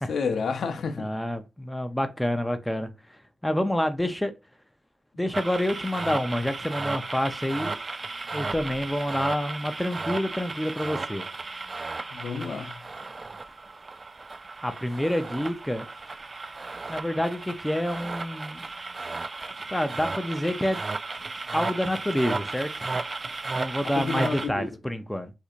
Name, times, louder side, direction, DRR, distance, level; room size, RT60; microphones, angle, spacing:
voice 1, 0.1-1.1 12.1-12.8 24.0-24.7, left 5 dB, 75° left, 0.6 m, -30 dB
voice 2, 1.0-2.9 3.4-4.3 5.2-7.8 8.3-11.2 14.6-15.9 16.9-18.6 19.7-20.8 21.5-22.7 23.5-25.3, left 1 dB, 10° left, 0.6 m, -28 dB
sound 1, 5.3-24.5, right 3 dB, 45° right, 0.3 m, -34 dB
4.3 x 2.6 x 2.5 m
supercardioid pair, 45°, 0 cm